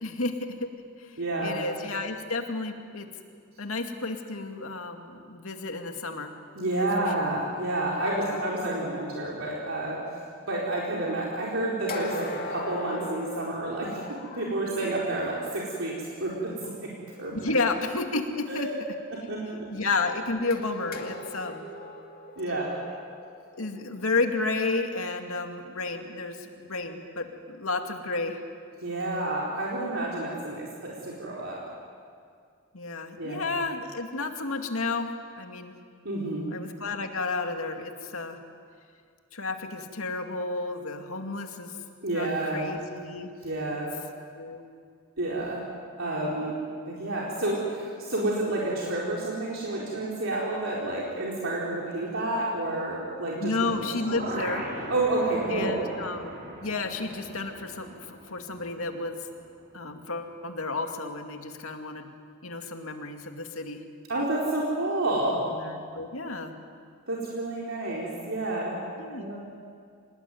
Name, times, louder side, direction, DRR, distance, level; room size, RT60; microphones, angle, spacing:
voice 1, 0.0-0.7 1.0-3.1 3.6-6.3 6.8-7.3 8.2-8.4 17.3-18.7 19.7-21.7 23.6-28.4 32.7-35.7 36.5-38.4 39.3-41.7 42.1-43.3 43.7-43.8 44.3-44.6 53.4-54.7 55.5-56.3 56.6-59.2 59.7-62.1 62.4-63.8 65.4-66.5 69.0-69.3, left 3 dB, 90° left, 4 dB, 2.4 m, -32 dB
voice 2, 1.2-1.6 6.6-10.0 10.5-16.5 16.8-16.9 17.2-17.3 18.5-18.7 19.1-19.7 22.4-22.7 28.8-31.6 33.2-33.4 36.0-36.5 42.0-42.7 43.4-43.9 45.2-45.6 46.0-46.6 46.9-53.5 53.8-53.9 54.9-55.8 64.1-65.4 67.1-68.8 69.1-69.4, right 2 dB, 70° right, -5 dB, 4.3 m, -29 dB
sound 1, 11.9-14.6 20.5-24.5, left 2 dB, 45° left, 2.5 m, -39 dB
sound 2, 53.4-59.5 59.8-59.9, right 1 dB, 50° right, 5.4 m, -39 dB
26.0 x 20.0 x 9.4 m, 2.2 s
head